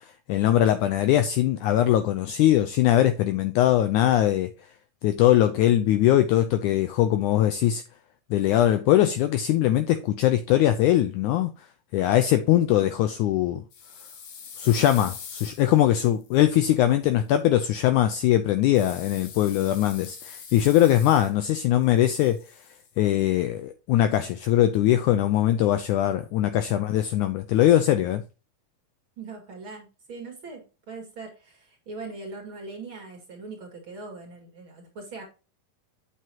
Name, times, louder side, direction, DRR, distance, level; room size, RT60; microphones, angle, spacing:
voice 1, 0.3-4.5 5.0-7.8 8.3-11.5 11.9-13.6 14.6-22.4 23.0-28.2, left 12 dB, 80° left, 1.8 m, -21 dB
sound 1, 13.7-16.8 18.7-21.6 21.8-22.9, left 7 dB, 60° left, 2.7 m, -43 dB
voice 2, 29.2-35.2, right 3 dB, 40° right, 2.4 m, -41 dB
8.2 x 7.7 x 2.9 m
omnidirectional pair, 4.1 m